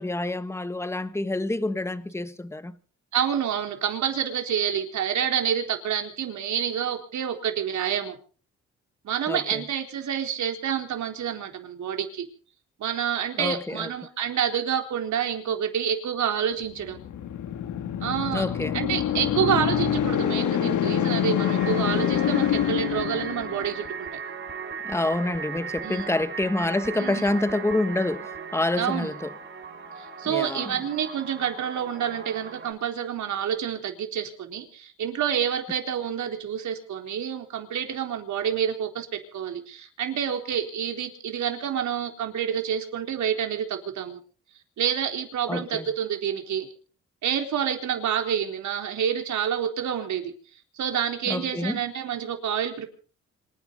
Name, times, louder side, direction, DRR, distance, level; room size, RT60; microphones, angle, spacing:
voice 1, 0.0-2.8 9.3-9.6 13.4-13.9 18.3-18.8 24.8-29.3 30.2-30.7 45.5-45.9 51.3-51.8, left 2 dB, 10° left, 1.3 m, -27 dB
voice 2, 3.1-8.2 9.0-12.3 12.8-17.0 18.0-18.5 18.7-24.1 25.8-26.1 27.0-27.2 28.8-29.1 30.2-44.2 44.8-46.7 47.2-50.3 50.8-52.9, right 8 dB, 70° right, 4.0 m, -28 dB
sound 1, 16.8-23.8, left 10 dB, 75° left, 2.2 m, -26 dB
sound 2, 21.4-32.7, right 6 dB, 40° right, 6.4 m, -38 dB
26.5 x 10.5 x 5.3 m
cardioid pair, 90°, 30 cm